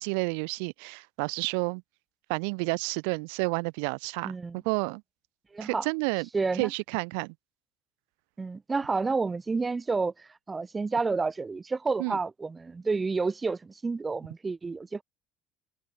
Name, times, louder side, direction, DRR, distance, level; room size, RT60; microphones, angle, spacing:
voice 1, 0.0-1.8 2.3-5.0 5.6-6.3 6.6-7.3 12.0-12.2, right 38 dB, 80° right, 0.6 m, -30 dB
voice 2, 4.2-4.6 5.5-5.9 6.3-6.7 8.4-15.0, right 4 dB, 20° right, 0.4 m, -30 dB
supercardioid pair, 115°, 0 cm